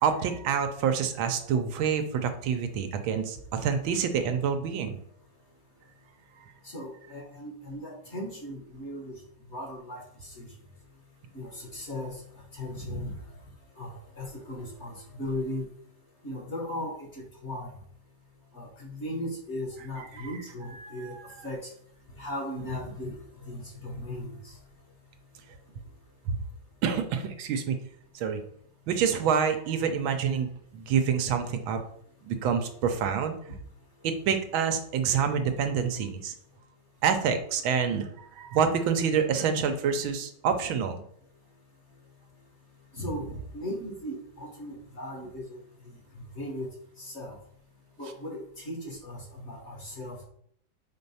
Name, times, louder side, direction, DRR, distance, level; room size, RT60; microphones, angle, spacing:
voice 1, 0.0-5.0 20.8-21.2 26.3-26.4 26.8-27.8 28.1-28.4 28.9-31.8 32.3-33.3 34.0-36.3 37.0-41.0, right 7 dB, 80° right, 7 dB, 1.5 m, -27 dB
voice 2, 6.6-9.1 9.5-10.5 11.3-12.2 12.5-13.1 13.8-15.6 16.2-17.7 18.5-21.1 21.4-21.7 22.2-23.2 23.4-24.5 33.5-33.6 37.7-37.8 42.9-45.6 46.1-46.7 47.0-47.4 48.0-50.3, left 1 dB, 40° left, 0 dB, 1.3 m, -37 dB
4.6 x 4.4 x 5.4 m, 0.67 s
omnidirectional pair, 2.2 m